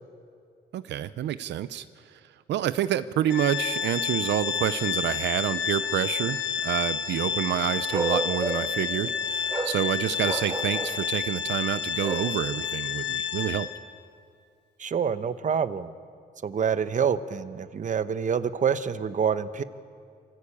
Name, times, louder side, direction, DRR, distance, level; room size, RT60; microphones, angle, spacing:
voice 1, 0.7-1.8 2.5-13.7, right 11 dB, 90° right, 14 dB, 0.6 m, -28 dB
Organ, 3.3-13.9, left 7 dB, 70° left, 1.5 m, -30 dB
Bark, 7.9-8.8 9.5-9.8 10.2-11.0 12.0-12.3, right 2 dB, 20° right, 2.7 m, -31 dB
voice 2, 14.8-15.9 16.4-19.6, right 7 dB, 45° right, 12 dB, 1.0 m, -27 dB
28.0 x 15.0 x 8.6 m, 2.4 s
cardioid pair, 105°, 18 cm